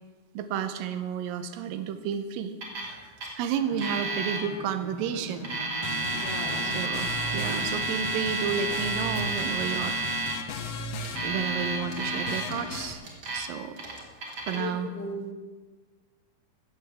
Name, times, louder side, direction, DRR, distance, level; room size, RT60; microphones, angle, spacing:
voice 1, 0.3-2.5 2.8-3.1 3.4-5.6 6.6-10.0 11.2-13.0 13.3-13.8 14.5-14.9, right 7 dB, 80° right, 9 dB, 2.4 m, -32 dB
Alarm, 2.6-2.9 3.2-3.3 3.8-4.4 5.3-10.3 11.0-12.6 13.0-13.4 13.8-14.6, right 3 dB, 40° right, 2.2 m, -31 dB
Bowed string instrument, 3.5-7.8, equal, 15° right, 2.1 m, -43 dB
sound 1, 5.8-12.9, left 4 dB, 85° left, 1.4 m, -36 dB
voice 2, 6.1-6.8 14.5-15.3, left 1 dB, 65° left, 2 dB, 1.5 m, -37 dB
15.0 x 15.0 x 3.5 m, 1.4 s
omnidirectional pair, 4.4 m